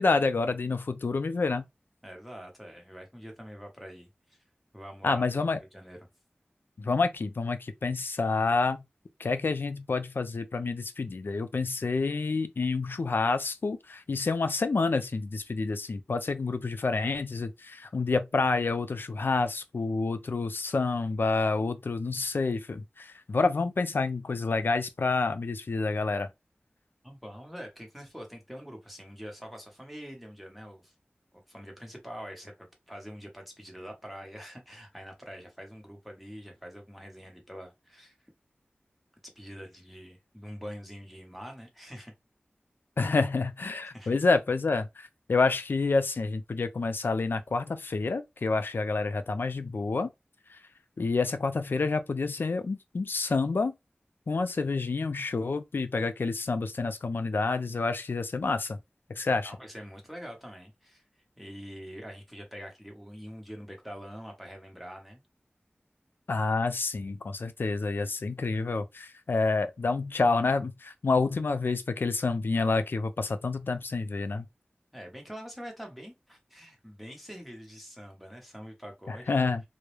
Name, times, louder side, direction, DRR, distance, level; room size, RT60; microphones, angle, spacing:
voice 1, 0.0-1.6 5.0-5.6 6.8-8.8 9.2-26.3 43.0-50.1 50.5-50.6 51.0-53.7 54.3-58.8 59.2-59.5 66.3-74.5 79.1-79.6, left 3 dB, 75° left, 0.3 m, -28 dB
voice 2, 2.0-4.4 4.7-6.0 27.0-30.9 31.5-38.1 39.4-42.1 43.9-44.2 59.4-61.0 61.4-65.2 74.9-79.4, equal, ahead, 0.9 m, -45 dB
2.3 x 2.0 x 3.0 m
wide cardioid pair, 50°, 4 cm